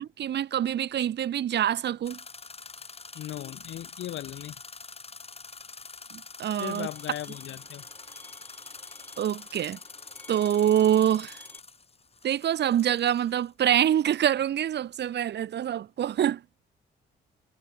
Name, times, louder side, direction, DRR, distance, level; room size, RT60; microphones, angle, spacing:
voice 1, 0.0-2.2 6.1-6.9 9.2-9.8 10.3-11.4 12.2-16.4, right 10 dB, 60° right, 1.1 m, -25 dB
sound 1, 2.0-13.5, left 4 dB, 30° left, 4.1 m, -45 dB
voice 2, 3.1-4.6 6.5-7.8, left 13 dB, 70° left, 1.3 m, -37 dB
Bowed string instrument, 6.6-11.6, left 1 dB, 10° left, 6.3 m, -54 dB
cardioid pair, 90°, 20 cm